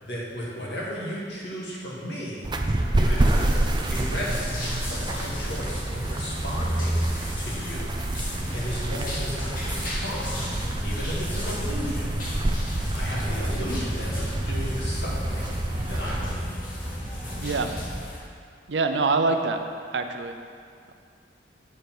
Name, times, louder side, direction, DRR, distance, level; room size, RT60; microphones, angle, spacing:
voice 1, 0.0-2.5 2.9-3.6 3.9-4.5 4.9-7.1 7.4-7.9 8.5-12.3 12.9-15.5 15.9-16.6, equal, 70° left, -5 dB, 2.0 m, -34 dB
sound 1, 2.4-16.2, right 1 dB, 25° right, 0.5 m, -28 dB
sound 2, 3.2-18.2, left 1 dB, 55° left, 1.9 m, -39 dB
sound 3, 4.5-18.0, equal, ahead, 1.9 m, -35 dB
voice 2, 17.4-17.7 18.7-19.6 19.9-20.4, right 3 dB, 80° right, 6 dB, 0.6 m, -24 dB
8.3 x 5.0 x 6.0 m, 2.3 s
head